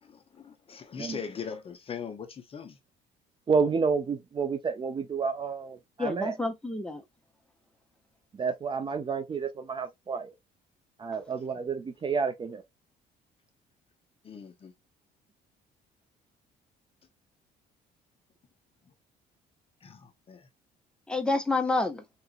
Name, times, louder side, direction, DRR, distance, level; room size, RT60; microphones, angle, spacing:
voice 1, 0.0-2.8 14.2-14.7 19.8-20.5, left 6 dB, 35° left, 0.6 m, -40 dB
voice 2, 3.5-6.4 8.3-10.3 11.0-12.6, right 5 dB, 30° right, 0.6 m, -30 dB
voice 3, 6.0-7.0 21.1-22.0, left 2 dB, 5° left, 0.9 m, -28 dB
3.7 x 2.8 x 2.3 m
cardioid pair, 110°, 17 cm